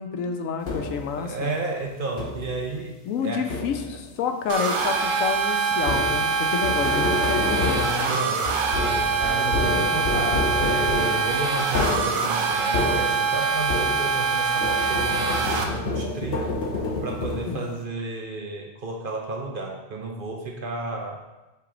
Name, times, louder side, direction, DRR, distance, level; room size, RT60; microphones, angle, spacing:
voice 1, 0.0-1.5 3.1-8.1 9.4-10.2 17.5-17.7, left 6 dB, 85° left, 6 dB, 1.0 m, -29 dB
sound 1, 0.7-1.2 2.2-2.6 3.5-4.1 5.8-14.3 14.6-17.8, left 3 dB, 50° left, 1.0 m, -29 dB
voice 2, 1.2-2.9 3.2-3.9 8.0-8.6 9.2-16.5 17.0-21.2, right 3 dB, 50° right, 1 dB, 0.8 m, -32 dB
sound 2, 4.5-15.6, right 5 dB, 80° right, 1.1 m, -24 dB
5.9 x 3.4 x 4.9 m, 1.1 s
omnidirectional pair, 1.3 m